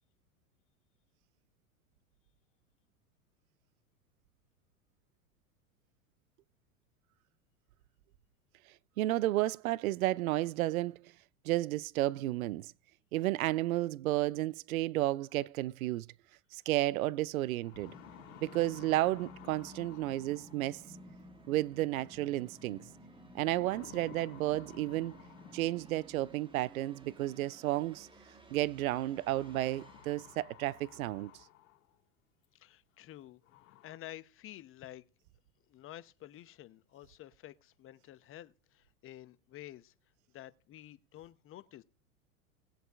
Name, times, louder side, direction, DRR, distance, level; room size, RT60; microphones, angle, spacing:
voice 1, 9.0-11.1 11.4-12.7 13.1-16.1 16.5-17.9 18.4-20.8 21.5-22.8 23.3-25.2 25.5-28.1 28.5-31.3, right 16 dB, 75° right, 0.5 m, -32 dB
sound 1, 16.8-16.9 17.4-20.8 22.2-22.6 23.4-26.2 27.5-27.6 29.1-32.0 32.4-32.5 33.1-33.2 33.4-34.0, left 14 dB, 65° left, 2.1 m, -55 dB
Musical instrument, 17.7-31.4, right 1 dB, 10° right, 1.3 m, -55 dB
voice 2, 32.5-33.4 33.8-35.0 35.7-39.9 40.3-41.8, left 13 dB, 30° left, 0.8 m, -50 dB
20.0 x 7.9 x 2.4 m
hypercardioid pair, 95°, 43 cm